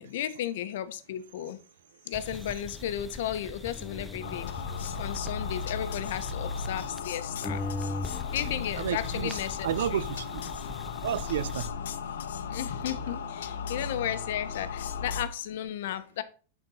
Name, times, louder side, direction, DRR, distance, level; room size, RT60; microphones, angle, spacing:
voice 1, 0.0-1.6 2.1-4.5 5.0-7.6 8.3-10.0 12.5-16.2, left 11 dB, 60° left, 1.0 m, -34 dB
sound 1, 2.1-7.2 7.4-11.7, left 2 dB, 5° left, 0.5 m, -40 dB
sound 2, 4.2-15.3, left 6 dB, 85° left, 1.2 m, -36 dB
voice 2, 8.8-9.4 9.6-10.4 11.0-11.7, right 10 dB, 80° right, 0.6 m, -31 dB
11.0 x 4.4 x 5.6 m
supercardioid pair, 170°, 0 cm